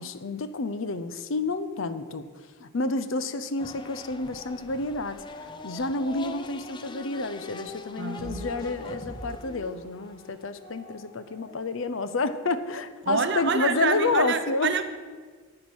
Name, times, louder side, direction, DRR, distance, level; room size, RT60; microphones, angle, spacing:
voice 1, 0.0-2.3 2.6-14.7, left 3 dB, 65° left, 12 dB, 0.6 m, -29 dB
sound 1, 3.6-11.5, left 3 dB, 20° left, 0.5 m, -44 dB
sound 2, 5.6-7.6 8.2-11.5, equal, 40° left, 1.6 m, -45 dB
voice 2, 8.0-8.4 13.0-14.8, right 5 dB, 55° right, 9 dB, 0.8 m, -27 dB
9.8 x 8.8 x 6.1 m, 1.5 s
head